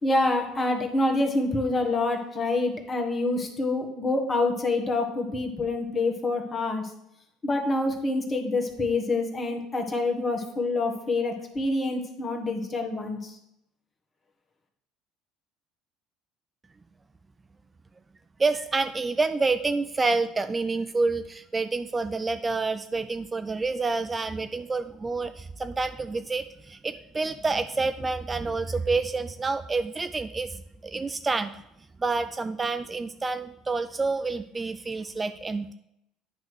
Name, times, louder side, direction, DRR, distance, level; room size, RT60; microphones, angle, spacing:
voice 1, 0.0-6.9 7.4-13.4, left 2 dB, 30° left, 3 dB, 1.5 m, -26 dB
voice 2, 18.4-31.6 32.0-35.7, right 3 dB, 25° right, 10 dB, 0.4 m, -28 dB
9.2 x 3.1 x 6.2 m, 0.81 s
hypercardioid pair, 70°, 0 cm